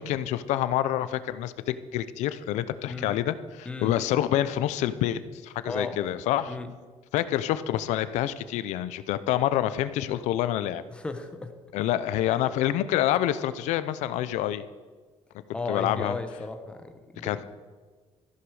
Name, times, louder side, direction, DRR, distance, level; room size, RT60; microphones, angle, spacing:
voice 1, 0.0-6.6 7.1-10.8 11.7-14.6 15.7-16.2 17.2-17.4, left 12 dB, 80° left, 14 dB, 0.7 m, -27 dB
voice 2, 5.7-6.0 6.4-6.7 10.9-11.5 15.5-17.4, left 3 dB, 10° left, 7 dB, 0.9 m, -35 dB
14.0 x 11.5 x 4.9 m, 1.5 s
cardioid pair, 180°, 12 cm